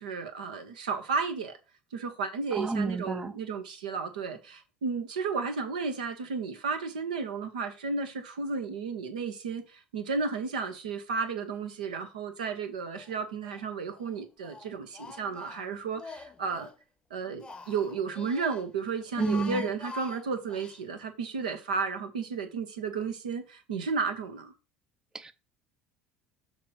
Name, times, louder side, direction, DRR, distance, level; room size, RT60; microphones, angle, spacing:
voice 1, 0.0-1.5 1.9-16.7 17.1-24.5, right 5 dB, 80° right, 0.9 m, -33 dB
voice 2, 2.5-3.3 19.2-19.7 25.1-25.3, right 3 dB, 15° right, 0.5 m, -30 dB
Speech, 12.9-13.7 14.0-16.8 17.2-18.6 19.0-20.8, left 4 dB, 20° left, 0.7 m, -46 dB
6.4 x 2.9 x 5.3 m
figure-of-eight pair, 65°, 4 cm